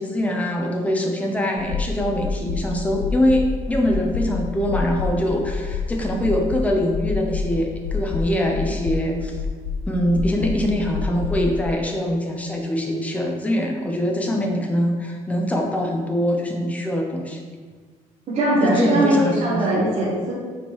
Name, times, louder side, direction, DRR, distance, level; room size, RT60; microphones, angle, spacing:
voice 1, 0.0-9.4 9.9-17.4 18.6-19.8, equal, 10° left, 1 dB, 0.8 m, -23 dB
sound 1, 1.6-11.7, left 5 dB, 85° left, 0.4 m, -28 dB
voice 2, 18.3-20.3, right 1 dB, 50° right, -9 dB, 1.4 m, -20 dB
5.0 x 4.4 x 4.7 m, 1.5 s
cardioid pair, 160°, 14 cm